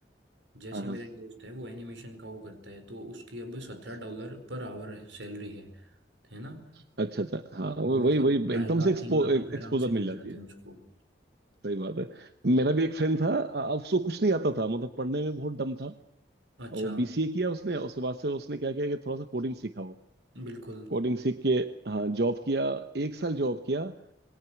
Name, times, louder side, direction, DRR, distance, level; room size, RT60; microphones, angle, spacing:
voice 1, 0.5-5.7 6.3-6.7 7.9-10.8 16.6-17.0 20.3-20.9, equal, 90° right, 7 dB, 4.8 m, -41 dB
voice 2, 7.0-10.4 11.6-15.9 16.7-19.9 20.9-23.9, right 2 dB, 60° right, 9 dB, 1.0 m, -28 dB
27.0 x 22.0 x 6.0 m, 0.78 s
head